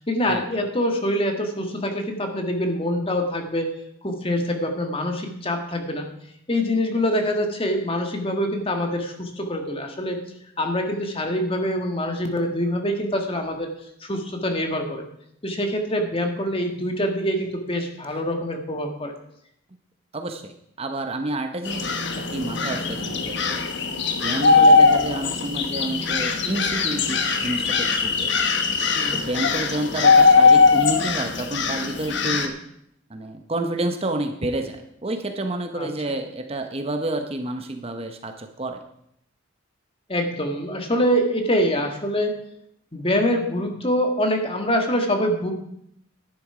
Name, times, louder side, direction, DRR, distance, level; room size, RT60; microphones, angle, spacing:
voice 1, 0.1-3.7 4.0-6.1 6.5-10.2 10.6-13.7 14.0-15.0 15.4-19.1 24.3-24.6 28.9-29.2 32.2-32.4 35.7-35.9 40.1-42.4 42.9-45.5, equal, 25° left, 4 dB, 1.7 m, -25 dB
voice 2, 20.1-23.6 24.2-28.3 29.1-32.5 33.1-38.8, right 1 dB, 30° right, 6 dB, 0.8 m, -29 dB
sound 1, 21.7-32.5, left 4 dB, 60° left, 1.2 m, -20 dB
11.0 x 10.5 x 4.9 m, 0.74 s
head